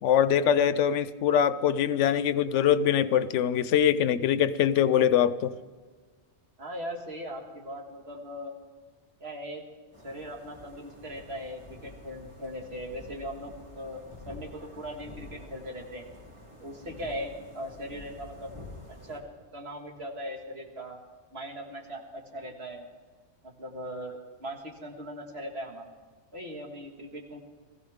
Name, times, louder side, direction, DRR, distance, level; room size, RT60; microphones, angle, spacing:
voice 1, 0.0-5.6, left 9 dB, 90° left, 15 dB, 0.9 m, -23 dB
voice 2, 6.6-8.5 9.2-9.6 10.0-16.1 16.6-18.5 19.0-19.2 19.5-21.0 21.3-22.9 23.4-25.9 26.3-27.4, equal, 60° right, 1 dB, 2.1 m, -39 dB
sound 1, 9.9-19.2, left 1 dB, 25° right, 3.0 m, -48 dB
21.0 x 15.0 x 3.6 m, 1.5 s
omnidirectional pair, 1.2 m